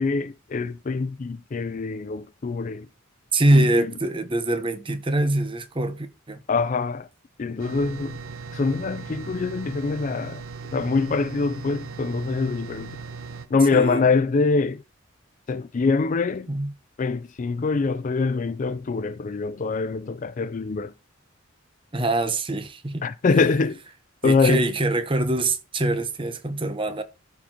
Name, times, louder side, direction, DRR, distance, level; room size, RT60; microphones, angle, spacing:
voice 1, 0.0-2.9 3.5-3.6 6.5-7.1 7.4-8.2 8.5-10.4 10.7-12.9 13.5-14.8 15.5-16.5 17.0-20.9 23.0-23.8 24.2-24.6, left 4 dB, 40° left, 0.4 m, -24 dB
voice 2, 3.3-6.4 13.7-14.1 16.5-16.7 21.9-23.1 24.2-27.0, right 1 dB, 25° right, 0.8 m, -24 dB
sound 1, 7.6-13.5, right 5 dB, 75° right, 0.9 m, -38 dB
13.5 x 4.5 x 2.9 m
head